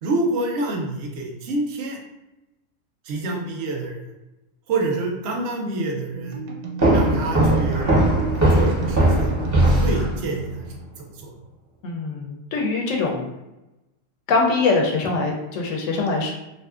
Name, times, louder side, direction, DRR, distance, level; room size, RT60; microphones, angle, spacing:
voice 1, 0.0-2.0 3.0-4.0 4.7-6.4 6.9-7.9 8.3-10.8 11.2-11.3, right 2 dB, 65° right, 1 dB, 0.7 m, -27 dB
sound 1, 6.1-11.0, right 4 dB, 85° right, 1.0 m, -34 dB
sound 2, 6.8-10.5, right 1 dB, 20° right, 0.4 m, -19 dB
voice 2, 11.8-13.3 14.3-16.3, left 3 dB, 70° left, 0 dB, 0.9 m, -23 dB
2.5 x 2.5 x 2.3 m, 0.97 s
omnidirectional pair, 1.4 m